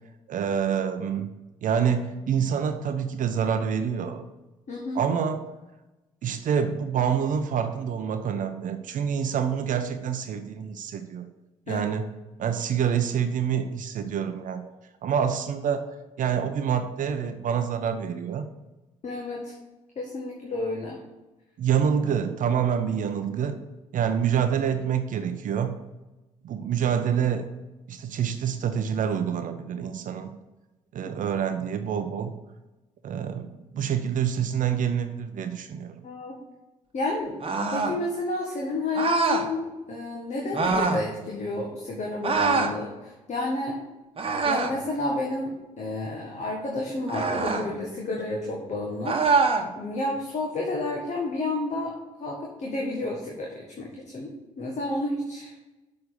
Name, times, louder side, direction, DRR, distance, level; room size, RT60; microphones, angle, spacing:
voice 1, 0.3-1.3 1.6-4.3 4.9-5.5 6.2-11.3 11.7-12.0 12.4-14.7 15.0-18.5 21.6-23.6 23.9-25.8 26.4-27.5 27.9-30.3 30.9-32.3 33.0-36.0, right 8 dB, 50° right, 8 dB, 0.7 m, -27 dB
voice 2, 4.7-5.0 11.7-11.9 19.0-19.5 19.9-21.0 36.0-36.4 36.9-37.3 37.7-43.8 44.4-51.9 52.2-55.5, left 2 dB, 40° left, -1 dB, 1.6 m, -31 dB
sound 1, 37.4-38.0 38.9-39.5 40.5-41.0 42.2-42.8 44.2-44.8 47.1-47.7 49.0-49.7, right 4 dB, 35° right, 1.2 m, -24 dB
6.9 x 5.3 x 6.7 m, 1.0 s
figure-of-eight pair, 45°, 17 cm